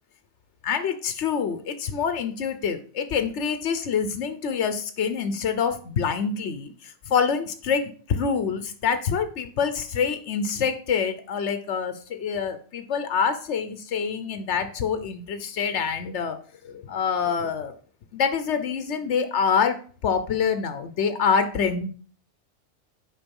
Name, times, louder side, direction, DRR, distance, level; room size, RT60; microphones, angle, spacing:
voice 1, 0.6-16.4 16.6-17.7 18.1-21.9, left 6 dB, 80° left, 9 dB, 1.2 m, -26 dB
8.9 x 5.2 x 5.4 m, 0.43 s
omnidirectional pair, 1.2 m